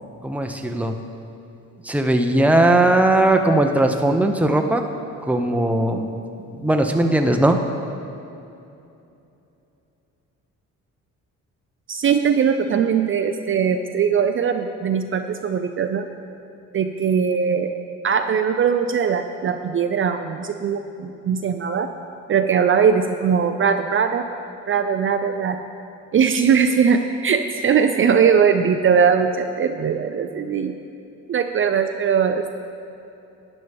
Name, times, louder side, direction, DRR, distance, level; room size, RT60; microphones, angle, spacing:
voice 1, 0.2-1.0 1.9-4.8 5.3-6.1 6.6-7.6, right 1 dB, 5° right, 4 dB, 0.8 m, -18 dB
voice 2, 11.9-16.1 16.7-17.7 18.0-21.9 22.3-24.2 24.7-25.6 26.1-30.7 31.3-32.5, right 7 dB, 45° right, 6 dB, 0.5 m, -20 dB
12.0 x 9.4 x 3.5 m, 2.8 s
cardioid pair, 90°, 30 cm